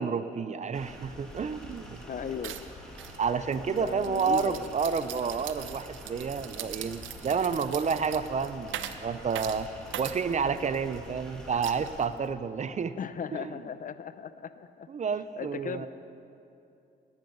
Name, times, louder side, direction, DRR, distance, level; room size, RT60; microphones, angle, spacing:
voice 1, 0.0-2.0 3.2-13.0 13.3-13.5 14.9-15.9, right 6 dB, 35° right, 13 dB, 0.5 m, -30 dB
sound 1, 0.7-12.1, equal, 5° left, 2.3 m, -46 dB
sound 2, 1.3-1.4 1.7-2.0 2.4-11.0 11.6-12.3, right 11 dB, 75° right, 0.7 m, -41 dB
voice 2, 2.0-2.6 3.7-4.7 13.0-14.9 15.4-15.9, left 7 dB, 45° left, 13 dB, 0.6 m, -37 dB
18.0 x 9.5 x 5.3 m, 2.7 s
cardioid pair, 90°, 20 cm